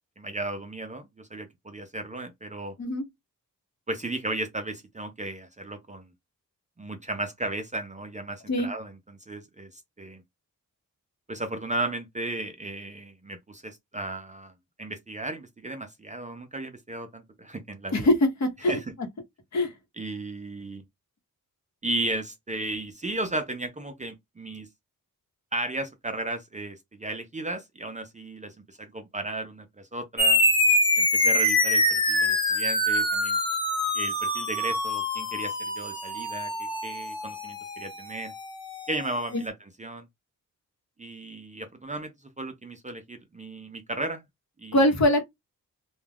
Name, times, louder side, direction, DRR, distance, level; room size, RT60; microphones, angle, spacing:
voice 1, 0.2-2.8 3.9-6.1 6.8-10.2 11.3-14.5 14.8-18.1 18.7-18.8 20.0-20.8 21.8-24.7 25.5-30.4 31.0-33.4 33.9-36.5 36.8-38.3 38.9-40.1 41.0-42.1 42.4-44.2 44.6-44.8, right 2 dB, 25° right, 0.4 m, -35 dB
voice 2, 17.9-18.8 19.5-19.7 39.3-39.4 44.7-45.2, left 1 dB, 55° left, 0.9 m, -22 dB
sound 1, 30.2-39.1, left 1 dB, 15° left, 0.7 m, -25 dB
2.2 x 2.2 x 3.3 m
wide cardioid pair, 125°, 33 cm